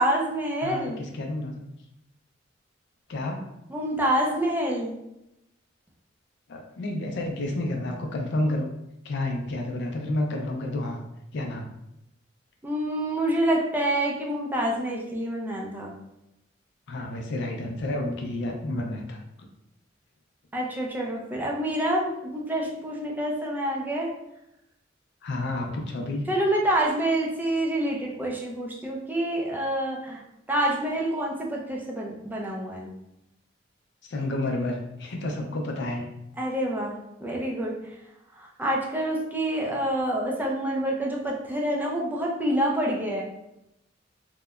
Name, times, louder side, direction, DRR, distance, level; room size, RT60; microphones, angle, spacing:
voice 1, 0.0-1.0 3.7-4.9 12.6-15.9 20.5-24.1 26.3-30.2 30.5-32.9 36.4-37.7 38.4-43.2, right 1 dB, 10° right, -2 dB, 0.3 m, -27 dB
voice 2, 0.6-1.6 3.1-3.4 6.5-8.7 9.0-11.0 11.3-11.7 16.9-19.2 25.2-26.3 34.1-36.1, left 1 dB, 65° left, 2 dB, 0.4 m, -30 dB
2.8 x 2.1 x 2.3 m, 0.87 s
head